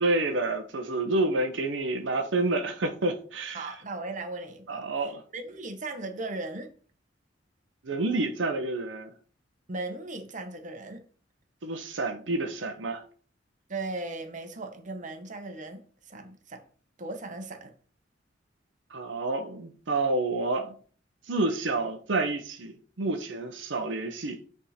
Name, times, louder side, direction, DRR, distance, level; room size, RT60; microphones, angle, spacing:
voice 1, 0.0-3.7 4.7-5.2 7.8-9.1 11.6-13.0 18.9-20.7 21.3-24.4, right 2 dB, 80° right, 0.8 m, -29 dB
voice 2, 3.5-4.8 5.3-6.7 9.7-11.0 13.7-16.6 17.0-17.7, right 2 dB, 45° right, 1.0 m, -37 dB
8.2 x 3.6 x 4.3 m
head